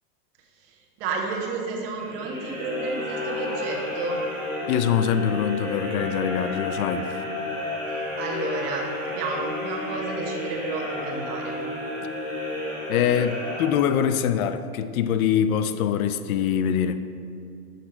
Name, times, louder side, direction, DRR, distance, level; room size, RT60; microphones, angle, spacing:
voice 1, 0.5-4.2 7.9-11.5, right 3 dB, 40° right, 0 dB, 1.1 m, -31 dB
sound 1, 1.9-14.2, left 1 dB, 20° left, 1.9 m, -32 dB
voice 2, 4.7-7.1 12.9-17.0, left 8 dB, 70° left, 11 dB, 0.5 m, -24 dB
6.6 x 6.3 x 4.3 m, 2.4 s
supercardioid pair, 165°, 45 cm